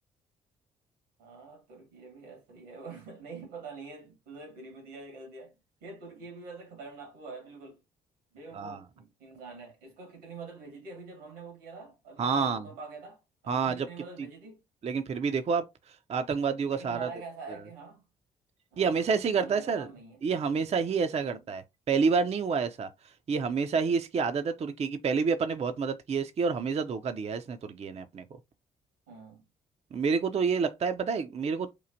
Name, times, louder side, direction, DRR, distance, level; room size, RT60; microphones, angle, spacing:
voice 1, 1.2-7.8 8.3-14.6 16.7-18.0 18.7-20.2 21.2-21.4 29.1-29.5, right 4 dB, 75° right, 1.4 m, -46 dB
voice 2, 12.2-12.7 13.5-13.9 14.2-14.3 14.8-17.1 18.8-19.9 20.2-28.2 29.9-31.7, right 5 dB, 35° right, 0.5 m, -29 dB
4.5 x 2.4 x 2.6 m
hypercardioid pair, 45°, 19 cm